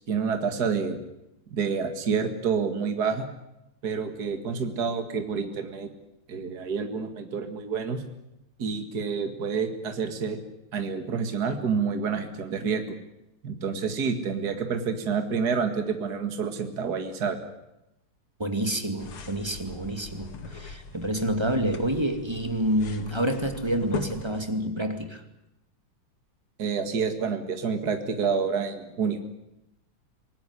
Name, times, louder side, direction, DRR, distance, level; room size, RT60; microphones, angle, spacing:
voice 1, 0.1-1.0 1.5-3.3 3.8-5.9 6.3-8.0 8.6-10.4 10.7-12.8 13.4-17.4 26.6-29.2, right 5 dB, 45° right, 6 dB, 2.5 m, -28 dB
voice 2, 18.4-25.2, right 1 dB, 10° right, 6 dB, 2.3 m, -28 dB
sound 1, 19.0-24.5, left 4 dB, 80° left, 2.9 m, -40 dB
26.0 x 19.0 x 9.9 m, 0.88 s
omnidirectional pair, 2.4 m